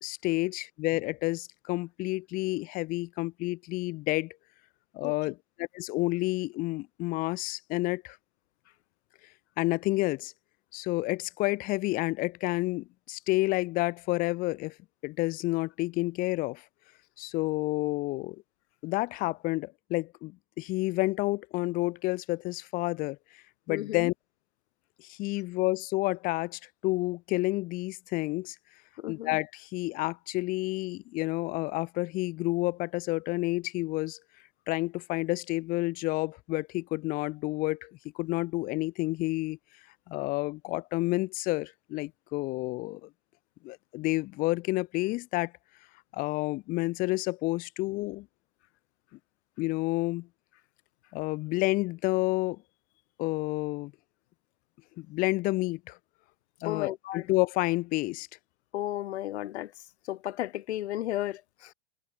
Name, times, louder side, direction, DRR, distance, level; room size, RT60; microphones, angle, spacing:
voice 1, 0.0-4.4 4.9-8.2 9.6-10.3 10.7-14.7 15.0-16.6 17.2-18.4 18.8-23.2 23.7-24.1 25.0-28.5 29.1-34.2 34.7-39.6 40.1-43.1 43.6-45.5 46.1-48.3 49.6-50.3 51.1-52.6 53.2-53.9 55.0-56.0 56.6-58.3, left 21 dB, 25° left, 1.1 m, -30 dB
voice 2, 23.7-24.1 29.0-29.3 56.6-57.3 58.7-59.7 60.1-61.7, left 14 dB, 75° left, 1.1 m, -34 dB
supercardioid pair, 165°, 33 cm